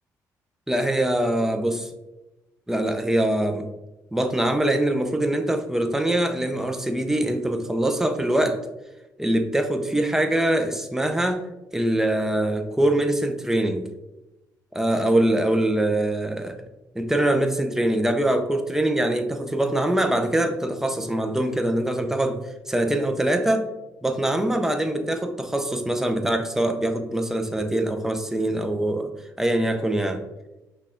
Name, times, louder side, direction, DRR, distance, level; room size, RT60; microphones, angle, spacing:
voice 1, 0.7-1.9 2.7-3.7 4.1-8.6 9.2-11.4 11.7-13.9 14.7-16.6 16.9-22.4 22.7-23.7 24.0-29.1 29.4-30.2, right 1 dB, 5° right, 6 dB, 0.6 m, -23 dB
5.5 x 2.4 x 3.7 m, 1.0 s
supercardioid pair, 70°, 7 cm